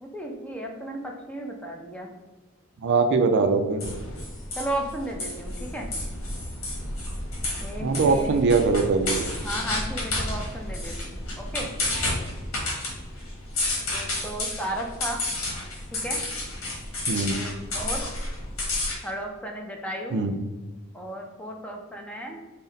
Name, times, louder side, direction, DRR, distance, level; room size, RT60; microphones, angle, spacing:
voice 1, 0.0-2.1 4.6-5.9 7.6-8.4 9.4-11.7 13.9-15.2 15.9-16.2 17.3-18.1 19.0-20.2 20.9-22.4, right 1 dB, 5° left, 1 dB, 0.4 m, -34 dB
voice 2, 2.8-3.9 7.8-9.3 17.1-17.4 20.1-20.4, right 4 dB, 55° right, 7 dB, 0.3 m, -22 dB
sound 1, 3.8-18.9, left 1 dB, 70° left, 1.2 m, -31 dB
4.0 x 2.1 x 3.8 m, 1.2 s
head